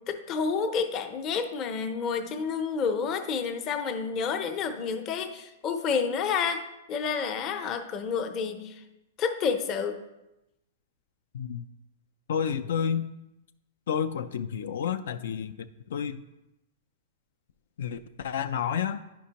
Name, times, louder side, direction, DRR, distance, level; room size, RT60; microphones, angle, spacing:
voice 1, 0.1-6.6 6.9-8.7 9.2-10.0, left 6 dB, 25° left, 6 dB, 0.6 m, -29 dB
voice 2, 11.3-11.6 12.3-13.1 13.9-15.6 15.9-16.2 17.8-19.0, left 8 dB, 70° left, 9 dB, 0.3 m, -30 dB
10.0 x 5.2 x 2.8 m, 0.93 s
hypercardioid pair, 165°, 0 cm